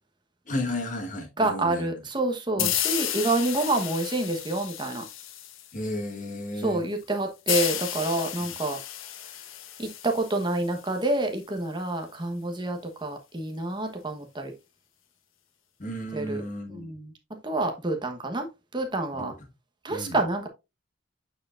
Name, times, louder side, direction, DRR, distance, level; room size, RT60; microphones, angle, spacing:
voice 1, 0.5-1.9 2.6-2.7 5.7-6.8 8.4-8.5 15.8-16.9 19.1-19.4 19.9-20.2, left 1 dB, 40° left, 1.8 m, -33 dB
voice 2, 1.4-5.0 6.6-8.8 9.8-14.5 16.1-16.4 16.7-17.1 17.4-18.5 18.7-19.3 19.8-20.5, right 2 dB, 20° right, 1.1 m, -28 dB
sound 1, 2.6-6.0 7.5-11.0, left 11 dB, 80° left, 0.9 m, -32 dB
8.2 x 4.9 x 2.5 m
head